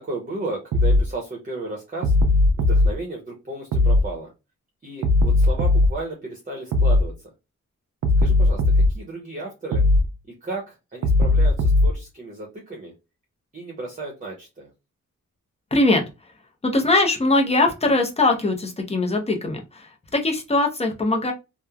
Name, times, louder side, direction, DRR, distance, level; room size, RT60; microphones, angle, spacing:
voice 1, 0.0-2.2 2.6-4.3 4.8-7.3 8.2-9.8 10.2-12.9 13.5-14.7, right 2 dB, 25° right, 0 dB, 0.8 m, -34 dB
sound 1, 0.7-1.1 2.0-2.9 3.7-4.1 5.0-5.9 6.7-7.1 8.0-8.9 9.7-10.1 11.0-11.9, left 2 dB, 80° right, 0.6 m, -17 dB
voice 2, 15.7-16.0 16.6-21.3, left 2 dB, 20° left, 3 dB, 0.6 m, -21 dB
3.0 x 2.1 x 2.3 m, 0.26 s
wide cardioid pair, 120°, 30 cm